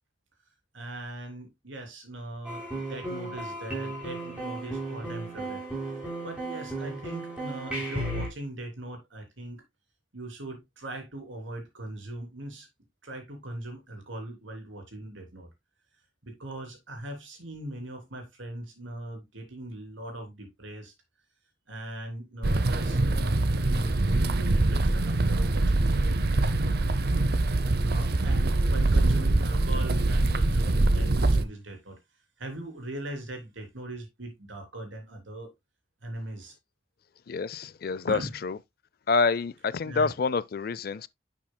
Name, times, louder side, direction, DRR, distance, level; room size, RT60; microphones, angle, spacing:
voice 1, 0.7-5.6 6.2-9.6 10.1-12.7 13.0-15.5 16.2-20.9 21.7-26.4 27.8-32.0 32.4-35.5 36.0-36.6 38.1-38.3 39.8-40.1, right 1 dB, 80° right, 3.2 m, -40 dB
sound 1, 2.4-8.3, right 1 dB, 5° right, 3.6 m, -35 dB
sound 2, 22.4-31.4, right 2 dB, 55° right, 0.6 m, -24 dB
voice 2, 37.3-38.6 39.1-41.1, left 4 dB, 50° left, 0.4 m, -27 dB
10.5 x 6.1 x 2.2 m
head